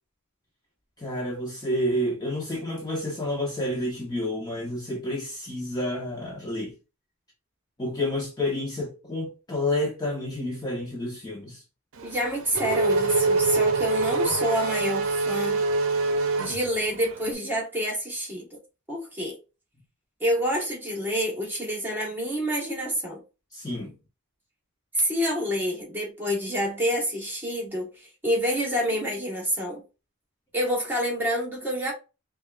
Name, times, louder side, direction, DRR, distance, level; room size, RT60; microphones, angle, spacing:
voice 1, 1.0-6.7 7.8-11.6 23.5-23.9, left 1 dB, 20° left, 0.8 m, -29 dB
voice 2, 12.0-15.6 16.4-18.6 18.9-19.4 20.2-23.2 24.9-29.8 30.5-31.9, equal, 10° right, 1.3 m, -28 dB
Race car auto racing / Accelerating revving vroom, 12.0-17.2, right 3 dB, 80° right, 0.6 m, -25 dB
5.1 x 2.4 x 2.4 m
head